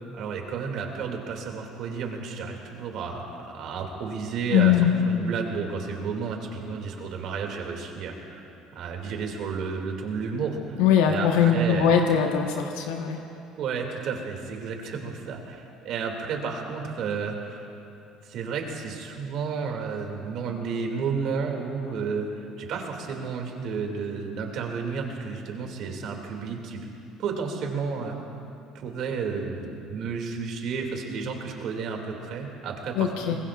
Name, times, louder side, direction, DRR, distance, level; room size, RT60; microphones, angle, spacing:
voice 1, 0.2-4.7 5.1-10.8 11.1-12.0 13.6-17.7 18.2-22.3 22.6-26.8 27.2-28.2 28.7-33.4, right 5 dB, 60° right, 2 dB, 2.4 m, -32 dB
voice 2, 4.5-4.9 10.8-13.2 32.9-33.4, left 8 dB, 90° left, 2 dB, 1.2 m, -21 dB
23.5 x 20.5 x 2.5 m, 2.8 s
supercardioid pair, 100°, 0 cm